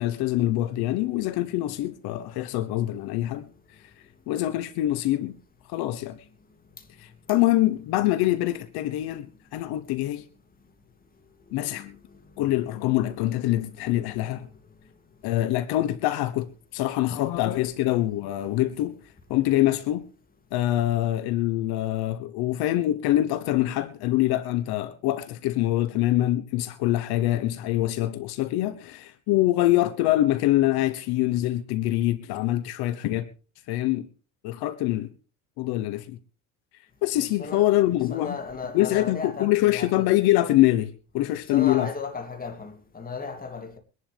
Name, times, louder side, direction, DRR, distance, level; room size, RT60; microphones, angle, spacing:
voice 1, 0.0-3.5 4.3-5.4 5.7-6.2 7.0-10.2 11.5-12.0 12.4-14.5 15.2-18.9 19.3-20.0 20.5-33.3 33.7-34.1 34.4-35.1 35.6-36.2 37.0-38.4 38.7-41.9, left 15 dB, 70° left, 1.2 m, -24 dB
voice 2, 17.2-17.6 37.1-37.6 38.1-40.1 41.5-43.8, left 4 dB, 20° left, 2.9 m, -35 dB
23.5 x 11.0 x 3.6 m
cardioid pair, 115°, 39 cm